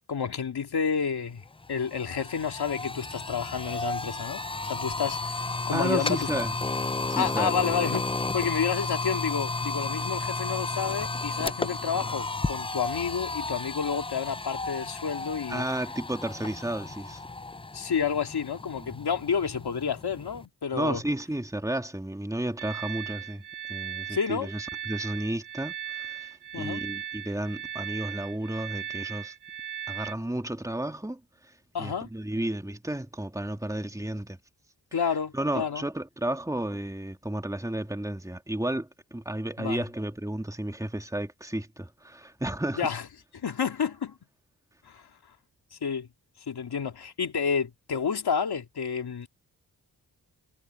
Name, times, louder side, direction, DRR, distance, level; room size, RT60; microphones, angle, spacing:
voice 1, 0.1-1.4 1.7-5.3 5.7-6.3 7.1-15.6 17.7-21.0 24.1-24.5 26.5-26.8 31.7-32.1 34.9-35.9 39.6-39.8 42.8-43.0 43.3-44.2 44.8-45.0 45.7-46.1 46.5-49.3, left 6 dB, 75° left, 2.8 m, -30 dB
sound 1, 1.0-1.1 1.4-20.5, left 3 dB, 15° left, 0.6 m, -33 dB
voice 2, 5.7-6.5 7.1-7.5 15.5-17.2 18.8-18.9 20.7-23.4 23.7-29.3 29.9-34.4 35.3-42.9, right 1 dB, 10° right, 2.5 m, -32 dB
sound 2, 22.6-30.1, right 11 dB, 90° right, 3.4 m, -38 dB
cardioid pair, 55°, 39 cm